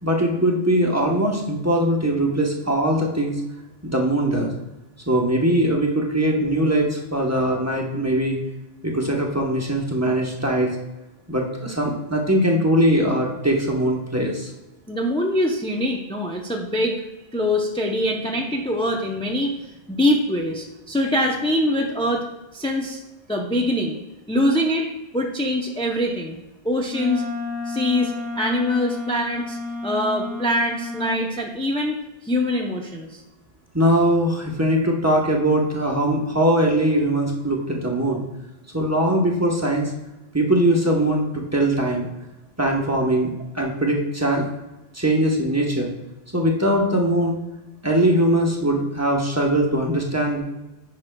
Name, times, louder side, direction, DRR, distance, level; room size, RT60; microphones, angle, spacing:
voice 1, 0.0-3.4 3.8-4.5 5.1-8.4 8.8-10.7 11.3-14.5 33.7-38.2 38.7-39.9 40.3-42.1 42.6-43.3 43.5-44.5 44.9-45.9 46.3-47.4 47.8-50.4, right 1 dB, 15° right, -1 dB, 0.8 m, -21 dB
voice 2, 14.9-17.0 17.3-19.6 19.9-22.2 22.5-23.0 23.3-24.0 24.3-26.4 26.6-27.2 27.6-33.2, left 1 dB, 10° left, 0 dB, 0.3 m, -23 dB
Wind instrument woodwind instrument, 26.9-31.2, left 2 dB, 85° right, 1.2 m, -31 dB
9.9 x 5.8 x 2.2 m, 1.0 s
omnidirectional pair, 1.2 m